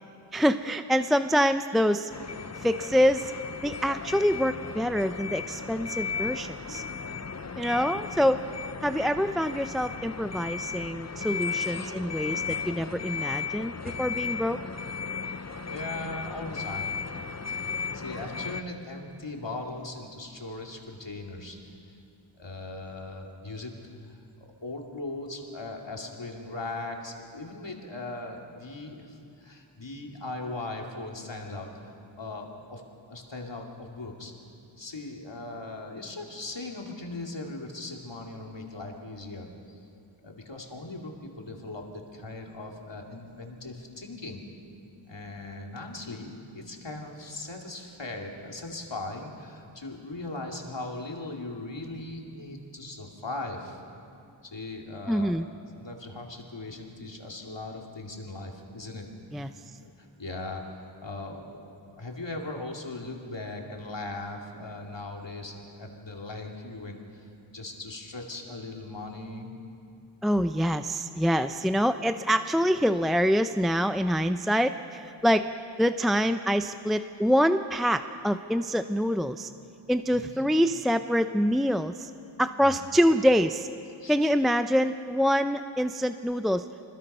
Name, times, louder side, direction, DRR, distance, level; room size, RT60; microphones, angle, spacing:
voice 1, 0.3-2.1 2.6-3.3 3.6-6.8 7.6-8.4 8.8-14.6 55.1-55.5 59.3-59.5 70.2-75.5 75.8-79.5 79.9-82.1 82.4-83.7 84.1-86.7, equal, ahead, 9 dB, 0.5 m, -25 dB
sound 1, 2.1-18.6, left 5 dB, 35° left, 0.7 m, -35 dB
voice 2, 15.6-17.0 17.9-21.9 22.4-23.7 24.1-32.8 33.1-34.3 34.8-39.5 40.2-44.4 45.1-53.8 54.5-55.3 55.7-59.1 59.3-59.5 59.8-69.5 80.1-80.3 82.6-82.8 84.0-84.3, left 2 dB, 65° left, 1 dB, 2.7 m, -39 dB
25.0 x 20.5 x 5.6 m, 2.5 s
wide cardioid pair, 50°, 47 cm